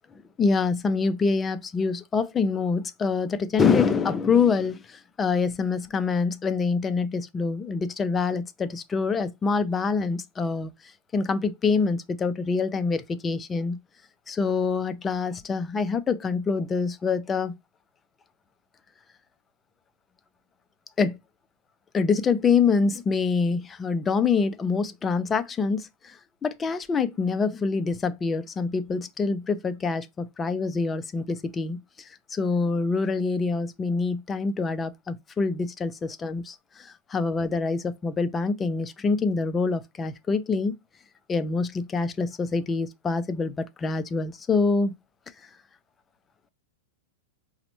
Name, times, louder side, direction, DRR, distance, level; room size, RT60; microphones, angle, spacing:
voice 1, 0.4-13.8 14.3-17.6 21.0-21.2 21.9-26.2 26.4-40.7 41.3-44.9, left 4 dB, 15° left, 0.3 m, -25 dB
5.0 x 2.0 x 2.9 m
supercardioid pair, 160°, 0 cm